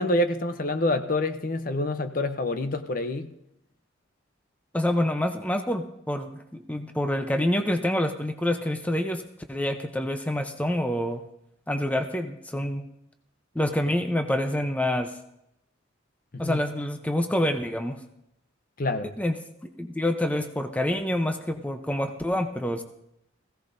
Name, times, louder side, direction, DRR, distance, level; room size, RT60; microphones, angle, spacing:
voice 1, 0.0-3.3 16.3-16.6 18.8-19.1, left 1 dB, 45° left, 9 dB, 0.7 m, -27 dB
voice 2, 4.7-9.2 9.5-11.2 11.7-12.8 13.5-15.1 16.4-18.0 19.2-19.4 19.6-22.8, left 1 dB, 5° left, 6 dB, 0.7 m, -27 dB
20.5 x 16.0 x 2.7 m, 0.80 s
head